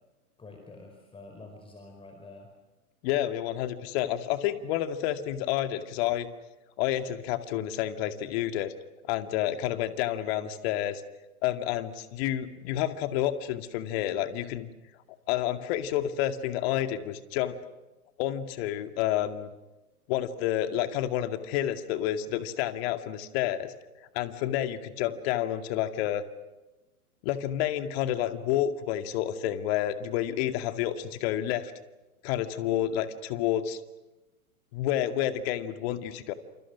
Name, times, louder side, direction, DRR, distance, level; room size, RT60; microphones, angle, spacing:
voice 1, 0.4-2.5, left 2 dB, 10° left, 3 dB, 4.7 m, -47 dB
voice 2, 3.0-6.3 6.8-8.7 9.1-11.0 11.4-14.7 15.3-17.6 18.2-19.5 20.1-23.7 24.1-26.2 27.2-31.7 32.2-33.8 34.7-36.3, left 12 dB, 45° left, 9 dB, 2.3 m, -29 dB
29.0 x 28.0 x 6.3 m, 1.1 s
hypercardioid pair, 115°, 44 cm